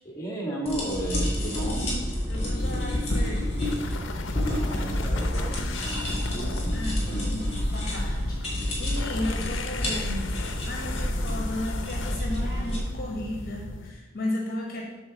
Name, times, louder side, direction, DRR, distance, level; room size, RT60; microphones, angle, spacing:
voice 1, 0.0-2.0 4.5-7.4 9.3-9.5, right 1 dB, 15° left, -3 dB, 1.8 m, -34 dB
sound 1, 0.7-12.8, left 1 dB, 35° left, 2.7 m, -29 dB
voice 2, 2.3-3.6 6.7-14.8, left 1 dB, 50° left, -1 dB, 1.1 m, -35 dB
sound 2, 2.4-12.6, equal, 35° right, 1.5 m, -44 dB
sound 3, 2.6-13.9, left 2 dB, 70° left, 0.6 m, -36 dB
7.0 x 4.1 x 6.3 m, 1.1 s
head